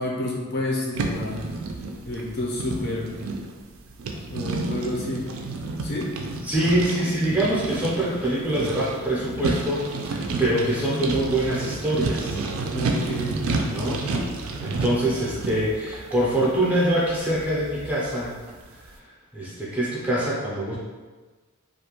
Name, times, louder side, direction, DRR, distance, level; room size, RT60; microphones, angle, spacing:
voice 1, 0.0-1.5 2.1-3.1 4.3-5.3 5.8-6.1 12.7-13.8, left 1 dB, 45° left, -3 dB, 0.5 m, -30 dB
sound 1, 0.9-18.6, right 3 dB, 65° right, 0.3 m, -31 dB
voice 2, 6.4-12.4 13.7-14.0 14.6-18.4 18.7-18.8 19.3-20.8, right 1 dB, 5° right, -7 dB, 0.5 m, -24 dB
2.4 x 2.2 x 2.9 m, 1.3 s
head